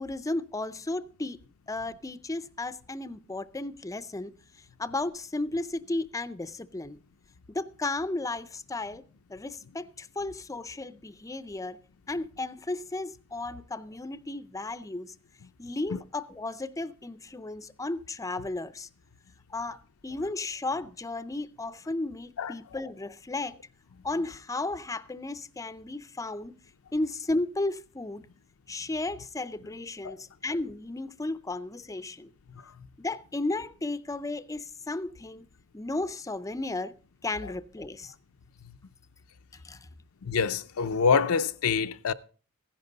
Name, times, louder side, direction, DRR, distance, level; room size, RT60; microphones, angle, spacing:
voice 1, 0.0-1.4 1.7-4.3 4.8-7.0 7.5-9.0 9.3-11.8 12.1-15.1 15.6-18.9 19.5-23.6 24.0-26.6 26.9-28.2 28.7-32.3 33.0-35.4 35.7-36.9 37.2-38.1 39.6-39.9, left 2 dB, 15° left, 0.5 m, -34 dB
voice 2, 40.2-42.1, left 5 dB, 70° left, 0.5 m, -25 dB
15.5 x 10.5 x 3.9 m
head